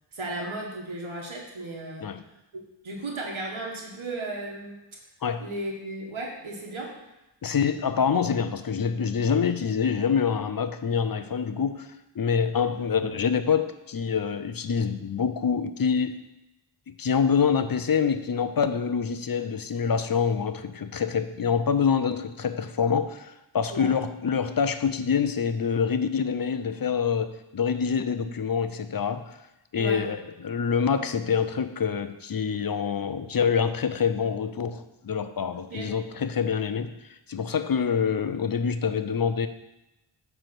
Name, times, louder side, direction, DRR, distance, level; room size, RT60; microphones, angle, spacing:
voice 1, 0.1-2.2 2.5-4.8 5.4-7.0 23.7-23.9 29.8-30.1 35.5-36.0, right 2 dB, 85° right, -1 dB, 1.3 m, -35 dB
voice 2, 7.4-11.9 12.1-16.2 16.9-29.4 29.7-36.9 37.3-39.5, left 6 dB, 50° left, 10 dB, 0.6 m, -26 dB
8.7 x 3.4 x 6.1 m, 0.95 s
wide cardioid pair, 60°, 47 cm